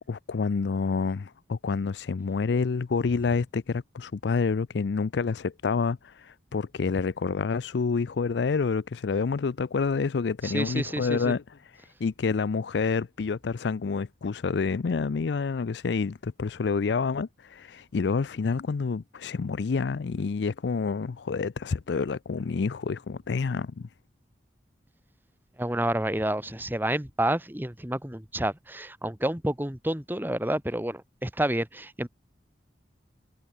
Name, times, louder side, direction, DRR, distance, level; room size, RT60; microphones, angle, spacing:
voice 1, 0.1-11.4 12.0-23.9, left 4 dB, 75° left, 0.5 m, -28 dB
voice 2, 10.4-11.3 25.6-32.1, right 1 dB, 10° right, 1.4 m, -29 dB
head